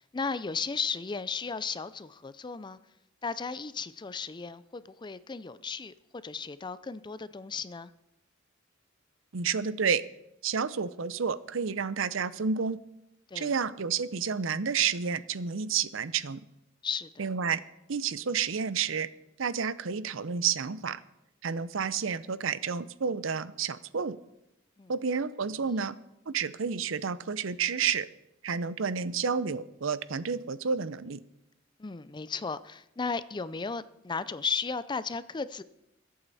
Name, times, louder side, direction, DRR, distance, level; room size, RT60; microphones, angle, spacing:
voice 1, 0.0-2.8 3.2-7.9 13.3-13.5 16.8-17.3 24.8-24.9 25.7-25.8 31.8-35.6, left 5 dB, 25° left, 0.4 m, -35 dB
voice 2, 9.3-10.0 10.4-12.8 13.3-16.4 17.2-17.6 17.9-19.1 19.4-21.0 21.4-24.2 24.9-26.0 26.3-28.1 28.4-31.2, right 6 dB, 70° right, 0.6 m, -30 dB
21.5 x 8.7 x 4.1 m
head